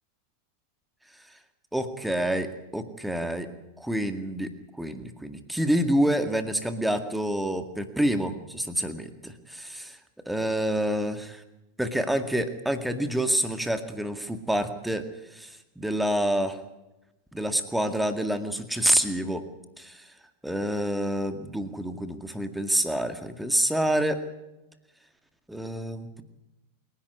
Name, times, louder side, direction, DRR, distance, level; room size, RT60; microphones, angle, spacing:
voice 1, 1.7-3.5 3.8-10.0 10.3-11.4 11.8-16.6 17.3-19.4 19.8-20.0 20.4-24.2 25.5-26.2, right 1 dB, 5° right, 8 dB, 2.1 m, -27 dB
28.0 x 11.5 x 9.6 m, 0.97 s
figure-of-eight pair, 90°, 0 cm